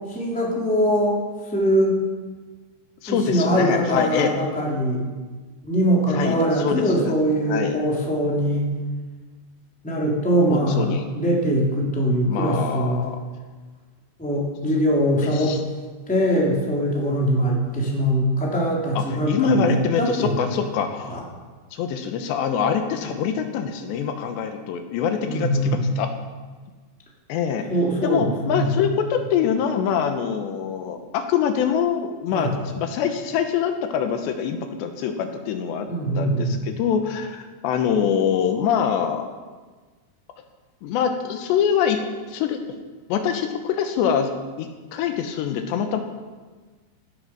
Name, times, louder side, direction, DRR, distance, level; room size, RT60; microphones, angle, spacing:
voice 1, 0.1-1.2 1.5-2.0 3.1-5.0 5.6-8.7 9.8-13.0 14.2-15.6 16.1-20.3 21.1-21.2 25.2-25.8 27.7-28.7 32.3-32.5 35.9-36.7, equal, ahead, -3 dB, 2.7 m, -22 dB
voice 2, 3.0-4.4 6.1-7.1 7.5-7.8 10.5-11.0 12.3-13.2 15.2-15.6 19.0-21.3 21.7-26.1 27.3-27.6 28.0-35.9 36.2-36.5 36.8-39.3 40.8-42.0 42.3-42.6 43.1-44.3 44.6-46.0, left 7 dB, 80° left, 6 dB, 3.3 m, -24 dB
17.0 x 11.0 x 6.3 m, 1.4 s
omnidirectional pair, 5.0 m